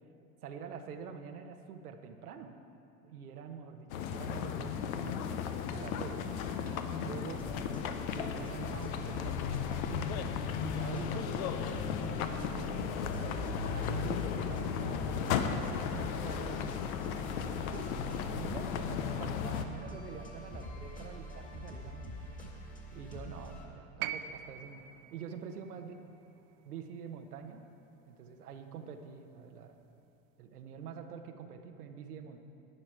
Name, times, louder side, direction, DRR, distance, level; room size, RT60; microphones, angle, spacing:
voice 1, 0.4-2.5 3.0-6.2 7.0-7.4 8.2-10.2 10.6-13.2 13.7-16.8 17.2-17.9 18.3-22.1 22.9-24.8 25.1-25.9 26.6-27.6 28.1-29.8 30.4-32.4, right 7 dB, 90° right, 6 dB, 1.1 m, -46 dB
sound 1, 3.9-19.6, left 7 dB, 70° left, 0.9 m, -35 dB
sound 2, 5.3-23.7, equal, 20° left, 2.0 m, -46 dB
sound 3, 24.0-28.2 29.4-29.5, right 11 dB, 50° right, 0.6 m, -44 dB
12.0 x 9.8 x 4.7 m, 2.7 s
hypercardioid pair, 95°, 44 cm